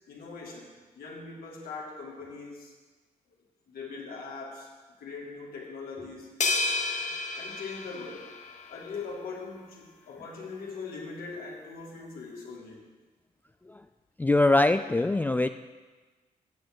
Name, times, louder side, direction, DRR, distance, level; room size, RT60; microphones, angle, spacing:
voice 1, 0.1-2.7 3.7-4.7 5.0-6.4 7.4-8.3 8.7-12.8, left 4 dB, 75° left, -1 dB, 2.3 m, -41 dB
sound 1, 6.4-8.9, left 3 dB, 50° left, 1.0 m, -31 dB
voice 2, 14.2-15.5, left 2 dB, 10° left, 9 dB, 0.4 m, -23 dB
9.3 x 7.4 x 6.0 m, 1.3 s
supercardioid pair, 60°, 15 cm